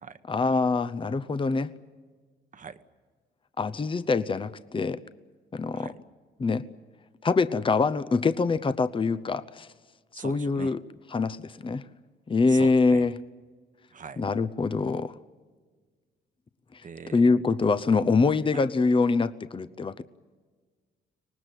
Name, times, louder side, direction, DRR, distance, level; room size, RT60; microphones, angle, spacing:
voice 1, 0.3-1.7 3.6-5.0 5.5-5.9 6.4-6.6 7.2-9.7 10.1-10.8 11.1-11.8 12.3-13.2 14.2-15.1 17.1-20.0, left 4 dB, 25° left, 13 dB, 0.8 m, -24 dB
voice 2, 10.1-10.7 12.5-13.0 13.9-14.2 16.8-17.2 18.5-18.6, right 6 dB, 40° right, 10 dB, 1.3 m, -41 dB
24.5 x 19.5 x 9.2 m, 1.5 s
cardioid pair, 90°, 20 cm